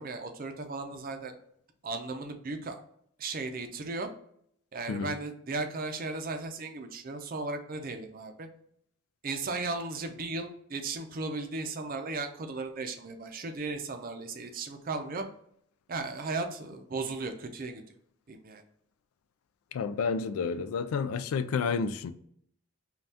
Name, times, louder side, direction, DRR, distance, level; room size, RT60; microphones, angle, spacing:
voice 1, 0.0-1.3 1.8-2.8 3.2-4.1 4.7-8.5 9.2-15.2 15.9-17.8 18.3-18.6, right 3 dB, 40° right, 0.5 m, -36 dB
voice 2, 19.7-22.1, left 5 dB, 80° left, 0.3 m, -30 dB
5.3 x 2.3 x 2.8 m
head